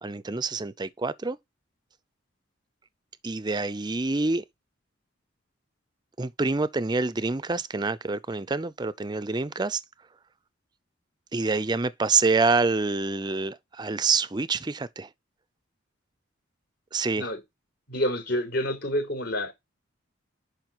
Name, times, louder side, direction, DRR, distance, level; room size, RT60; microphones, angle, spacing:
voice 1, 0.0-1.4 3.2-4.4 6.2-9.8 11.3-15.1 16.9-17.3, right 4 dB, 20° right, 0.5 m, -26 dB
voice 2, 17.9-19.5, equal, 55° left, 5.0 m, -28 dB
10.5 x 5.0 x 3.0 m
head